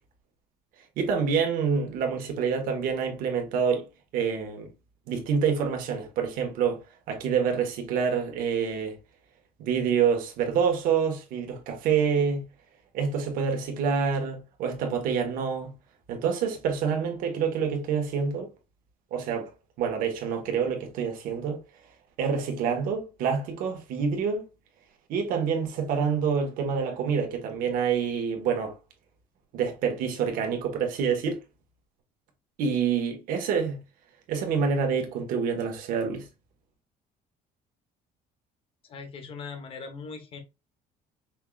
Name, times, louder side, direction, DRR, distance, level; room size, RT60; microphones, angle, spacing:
voice 1, 1.0-3.9 4.1-4.7 5.1-9.0 9.6-12.4 12.9-15.7 16.1-18.5 19.1-19.5 19.8-21.6 22.2-24.4 25.1-28.7 29.5-31.4 32.6-33.8 34.3-36.3, right 6 dB, 65° right, 1.5 m, -27 dB
voice 2, 38.8-40.4, left 5 dB, 40° left, 1.2 m, -40 dB
5.6 x 3.7 x 2.4 m
cardioid pair, 170°, 15 cm